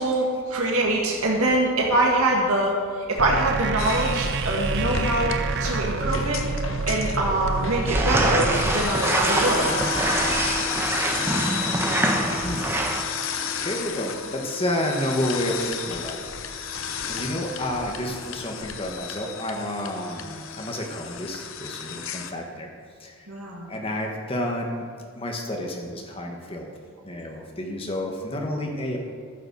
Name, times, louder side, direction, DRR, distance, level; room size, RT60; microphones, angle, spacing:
voice 1, 0.0-2.7 3.1-6.4 6.9-9.8 23.3-23.7, right 1 dB, 75° right, -2 dB, 2.1 m, -24 dB
sound 1, 3.2-8.8, right 4 dB, 50° right, 0.5 m, -28 dB
sound 2, 3.8-22.3, left 5 dB, 60° left, 0.8 m, -32 dB
sound 3, 7.9-13.0, right 1 dB, 10° right, 1.0 m, -25 dB
voice 2, 13.6-16.3 17.1-22.7 23.0-23.3 23.7-24.8 25.1-26.7 27.0-29.0, left 1 dB, 25° left, 1 dB, 1.6 m, -30 dB
14.0 x 6.5 x 6.4 m, 2.3 s
head